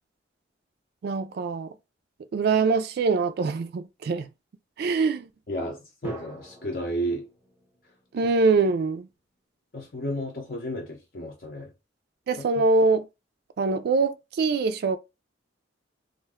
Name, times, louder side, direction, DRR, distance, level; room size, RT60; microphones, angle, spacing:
voice 1, 1.0-1.7 2.3-4.3 4.8-5.3 8.1-9.1 12.3-13.1 13.6-15.0, right 4 dB, 55° right, 0.3 m, -23 dB
voice 2, 5.5-7.3 9.7-11.7 12.4-12.5, equal, 50° left, 0.6 m, -32 dB
sound 1, 6.0-8.8, right 1 dB, 10° right, 0.6 m, -46 dB
2.4 x 2.2 x 3.5 m
head